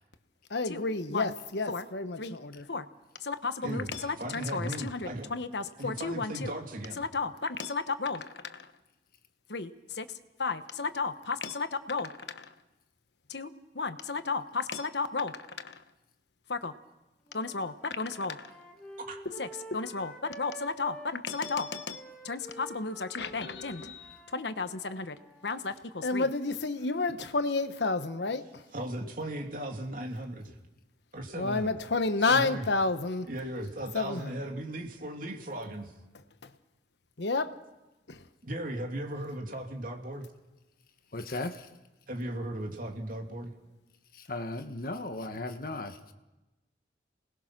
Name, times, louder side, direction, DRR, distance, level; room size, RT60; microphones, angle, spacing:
voice 1, 0.5-2.8 3.2-6.5 7.0-8.7 9.5-10.1 10.4-12.5 13.3-13.5 13.7-15.8 16.5-16.7 17.3-18.5 19.2-25.2 25.4-28.6 31.4-33.3 33.9-34.4 36.4-36.5 37.2-37.5 38.1-38.2, left 3 dB, 70° left, 1.1 m, -32 dB
voice 2, 3.6-5.3 5.8-7.0 19.1-19.2 28.7-30.6 31.1-31.7 32.3-32.7 33.2-35.9 38.4-40.3 42.1-43.5, right 1 dB, 50° right, 2.7 m, -37 dB
sound 1, 17.3-21.1 21.4-25.8, right 1 dB, 5° left, 2.4 m, -48 dB
voice 3, 41.1-41.7 44.1-46.0, left 2 dB, 55° left, 1.4 m, -36 dB
28.0 x 20.0 x 6.1 m
head